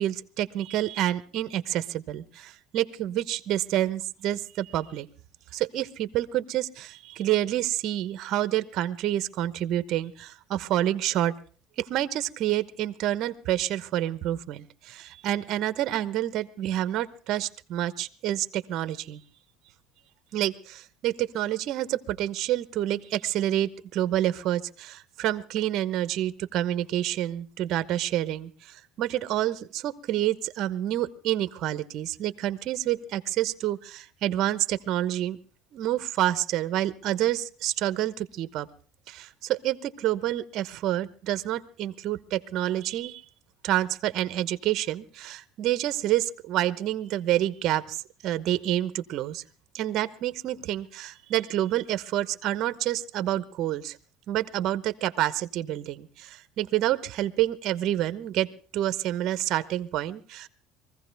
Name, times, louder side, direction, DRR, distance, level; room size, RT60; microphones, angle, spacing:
voice 1, 0.0-5.1 5.5-11.3 11.8-19.2 20.3-35.4 35.7-38.7 39.1-43.2 43.6-48.0 48.2-49.4 49.7-54.0 54.3-60.5, right 13 dB, 50° right, 13 dB, 1.0 m, -28 dB
23.5 x 15.5 x 3.4 m, 0.41 s
cardioid pair, 155°, 0 cm